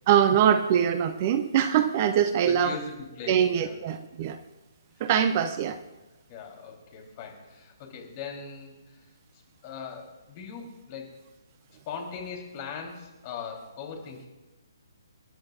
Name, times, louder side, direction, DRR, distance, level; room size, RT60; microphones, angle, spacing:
voice 1, 0.1-2.7 3.3-4.4 5.0-5.8, right 9 dB, 30° right, 10 dB, 0.7 m, -23 dB
voice 2, 2.4-3.8 4.2-4.3 5.0-5.1 6.3-9.0 9.6-11.1 11.7-14.3, left 6 dB, 30° left, 1 dB, 3.8 m, -40 dB
28.5 x 11.5 x 2.6 m, 1.1 s
figure-of-eight pair, 135°, 2 cm